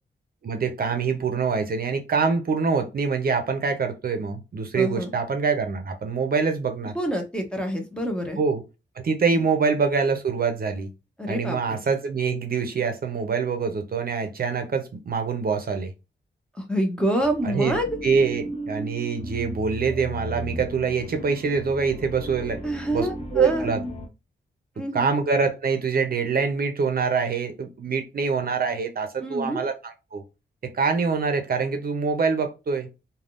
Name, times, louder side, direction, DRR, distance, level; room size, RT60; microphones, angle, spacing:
voice 1, 0.4-6.9 8.4-8.6 9.0-10.9 11.3-15.9 17.4-17.8 18.0-22.6 22.9-23.8 24.9-30.2 30.6-32.9, right 5 dB, 55° right, 0.7 m, -25 dB
voice 2, 4.7-5.1 6.9-8.4 11.2-11.8 16.6-18.0 22.6-23.7 24.8-25.1 29.2-29.6, equal, 5° left, 0.8 m, -27 dB
sound 1, 17.2-24.1, equal, 30° left, 0.9 m, -35 dB
3.4 x 2.3 x 2.4 m
wide cardioid pair, 120°, 19 cm